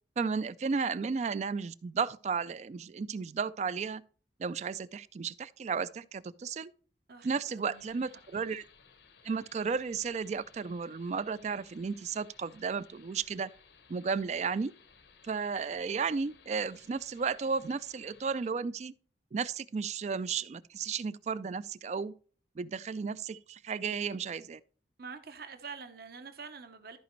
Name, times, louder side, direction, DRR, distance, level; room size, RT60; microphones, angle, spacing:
voice 1, 0.2-4.0 4.4-6.7 7.2-8.6 9.2-13.5 13.9-14.7 15.2-18.9 19.3-22.1 22.6-24.6, right 5 dB, 40° right, 0.3 m, -34 dB
voice 2, 7.1-8.3 25.0-27.0, right 5 dB, 55° right, 0.9 m, -46 dB
sound 1, 7.7-18.5, left 6 dB, 75° left, 0.9 m, -60 dB
13.5 x 5.1 x 3.1 m
head